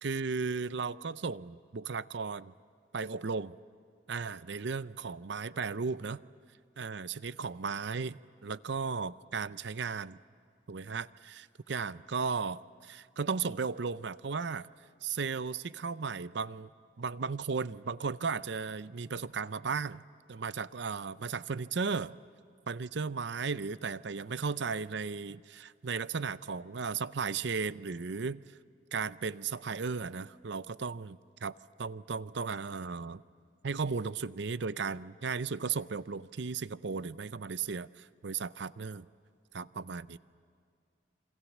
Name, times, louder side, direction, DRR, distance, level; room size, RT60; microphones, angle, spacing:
voice 1, 0.0-2.5 2.9-3.5 4.1-6.2 6.8-10.2 10.7-14.7 15.0-16.7 17.0-20.0 20.3-22.1 22.7-28.4 28.9-33.2 33.6-39.1 39.5-40.2, right 5 dB, 60° right, 16 dB, 0.6 m, -35 dB
27.5 x 25.5 x 7.2 m, 2.3 s
head